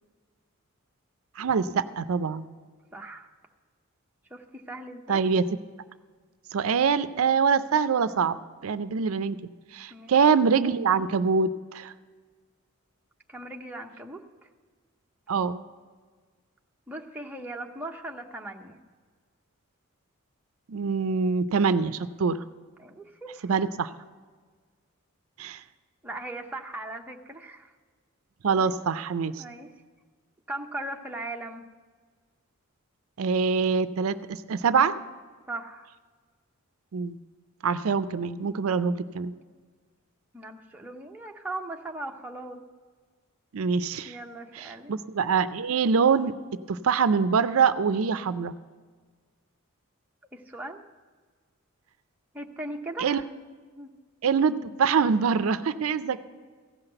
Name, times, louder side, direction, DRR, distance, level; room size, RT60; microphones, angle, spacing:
voice 1, 1.4-2.5 5.1-5.4 6.5-8.4 8.6-11.9 15.3-15.6 20.7-22.4 23.5-23.9 25.4-25.6 28.4-29.4 33.2-34.9 36.9-37.2 37.6-39.3 43.5-44.2 44.6-46.3 46.7-48.5 53.0-53.2 54.2-56.2, right 5 dB, 75° right, 13 dB, 0.5 m, -24 dB
voice 2, 2.9-3.3 4.3-5.2 9.9-10.2 13.3-14.5 16.9-18.8 22.8-23.5 26.0-27.7 28.6-28.7 29.4-29.7 30.5-31.7 35.5-35.9 40.3-42.6 44.0-44.9 50.3-50.8 52.3-53.3 53.8-53.9, right 2 dB, 10° right, 1 dB, 0.7 m, -39 dB
15.5 x 5.8 x 7.8 m, 1.5 s
head